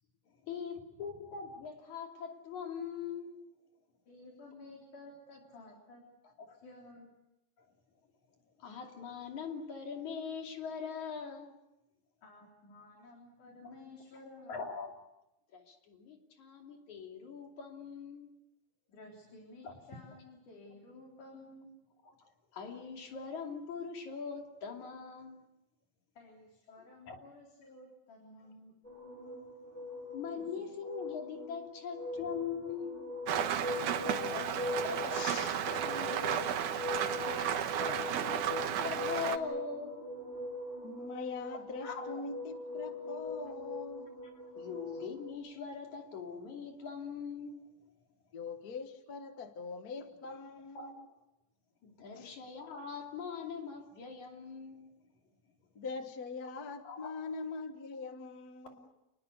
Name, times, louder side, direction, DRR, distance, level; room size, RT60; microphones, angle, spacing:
voice 1, 0.4-3.3 6.4-6.6 8.6-11.5 13.0-13.1 13.6-13.7 14.5-14.9 15.5-18.3 19.6-19.8 22.5-25.4 27.1-27.2 30.1-33.1 34.8-35.2 36.1-36.3 37.0-40.1 41.8-42.2 44.6-47.7 50.7-50.9 51.8-54.9 56.8-57.2, left 6 dB, 75° left, 4.2 m, -42 dB
voice 2, 4.1-6.1 6.6-7.1 12.2-14.7 18.9-21.7 26.2-28.8 30.4-30.7, left 2 dB, 90° left, 5.4 m, -54 dB
sound 1, 28.8-45.3, left 2 dB, 15° left, 7.5 m, -41 dB
Rain, 33.3-39.4, right 9 dB, 85° right, 2.7 m, -33 dB
voice 3, 33.7-36.5 40.8-44.1 48.3-51.0 52.1-52.3 55.7-58.9, left 4 dB, 45° left, 1.3 m, -43 dB
30.0 x 20.0 x 8.1 m
omnidirectional pair, 3.5 m